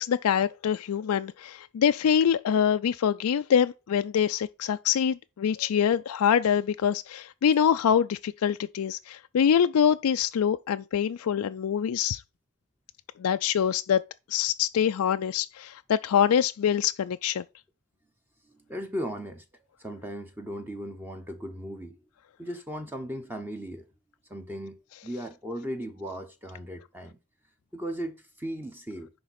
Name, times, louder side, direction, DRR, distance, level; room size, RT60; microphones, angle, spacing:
voice 1, 0.0-12.2 13.2-14.0 14.3-17.4, left 8 dB, 75° left, 0.4 m, -25 dB
voice 2, 18.4-19.4 19.8-22.0 22.4-23.8 24.3-27.2 27.7-29.1, equal, 10° right, 0.9 m, -37 dB
10.5 x 3.9 x 4.2 m
head